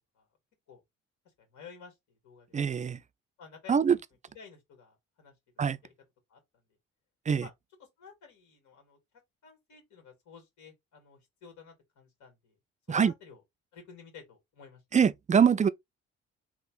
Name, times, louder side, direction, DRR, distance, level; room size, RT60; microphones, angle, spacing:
voice 1, 1.4-2.5 3.4-4.0 4.3-5.9 6.3-6.6 7.4-7.5 7.8-9.0 9.4-12.6 12.9-13.4 13.7-14.8, left 6 dB, 65° left, 2.1 m, -52 dB
voice 2, 2.5-3.0 3.7-4.0 5.6-5.8 7.3-7.4 12.9-13.1 14.9-15.7, right 7 dB, 25° right, 0.4 m, -23 dB
3.7 x 2.5 x 3.7 m
hypercardioid pair, 50°, 31 cm